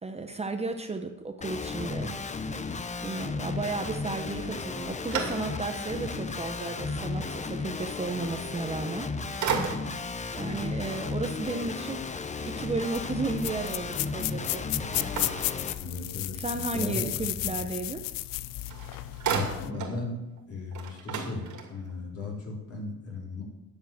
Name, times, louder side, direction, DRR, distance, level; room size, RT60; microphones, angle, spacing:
voice 1, 0.0-2.2 3.0-9.1 10.4-12.0 12.4-14.6 16.3-18.0, right 3 dB, 20° right, 6 dB, 0.9 m, -33 dB
Guitar, 1.4-15.7, left 4 dB, 20° left, 0.7 m, -34 dB
sound 1, 4.5-5.9 6.4-6.5 8.8-9.1 9.4-10.2 14.9-16.2 18.3-18.4 18.7-20.0 20.4-20.5 20.7-22.0, right 5 dB, 60° right, 2.6 m, -34 dB
sound 2, 12.9-19.7, left 16 dB, 75° left, 0.5 m, -34 dB
voice 2, 15.8-17.5 19.6-20.2 20.5-23.4, left 3 dB, 45° left, -1 dB, 4.1 m, -36 dB
10.0 x 7.5 x 7.4 m, 0.96 s
cardioid pair, 105°, 34 cm